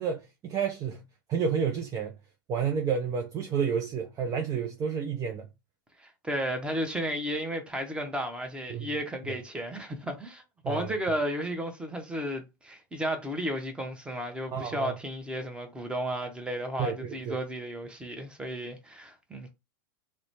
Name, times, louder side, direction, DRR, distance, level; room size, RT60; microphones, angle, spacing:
voice 1, 0.0-2.2 2.5-5.5 8.7-8.9 9.2-9.4 10.6-10.9 14.5-14.9 16.8-17.4, right 6 dB, 30° right, 0.5 m, -30 dB
voice 2, 6.0-19.5, equal, 10° right, 1.0 m, -33 dB
2.9 x 2.2 x 4.1 m
hypercardioid pair, 100°, 11 cm